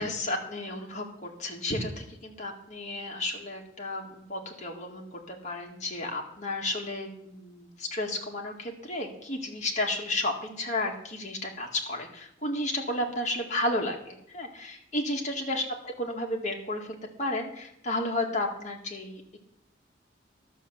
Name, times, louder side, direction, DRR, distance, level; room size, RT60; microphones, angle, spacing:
voice 1, 0.0-15.7 16.0-19.4, left 1 dB, 40° left, 1 dB, 2.1 m, -32 dB
11.5 x 6.7 x 7.4 m, 0.73 s
head